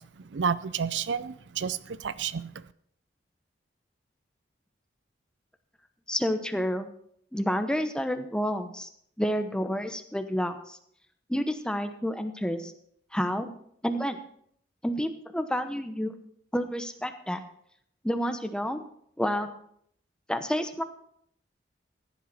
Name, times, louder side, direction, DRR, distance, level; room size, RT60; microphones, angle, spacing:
voice 1, 0.2-2.5, right 6 dB, 80° right, 17 dB, 0.5 m, -30 dB
voice 2, 6.1-6.9 7.3-8.9 9.2-10.8 11.3-12.7 13.1-13.5 13.8-14.2 14.8-16.1 16.5-17.4 18.0-18.8 19.2-19.5 20.3-20.8, equal, 5° left, 8 dB, 0.9 m, -29 dB
15.0 x 10.5 x 4.2 m, 0.67 s
head